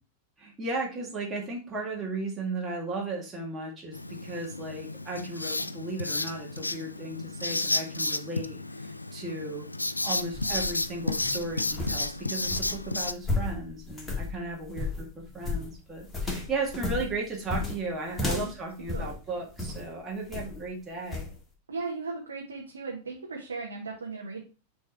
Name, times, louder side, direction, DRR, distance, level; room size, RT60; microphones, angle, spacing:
voice 1, 0.4-9.7 10.0-21.3, right 2 dB, 20° right, -2 dB, 2.0 m, -35 dB
Writing, 3.9-13.1, left 2 dB, 85° left, 0.3 m, -32 dB
sound 1, 10.3-19.9 20.3-20.7 21.1-21.3, left 3 dB, 10° left, 1.8 m, -34 dB
voice 2, 21.7-24.4, right 4 dB, 70° right, -1 dB, 1.3 m, -37 dB
6.3 x 3.6 x 4.5 m, 0.34 s
figure-of-eight pair, 90°, 0 cm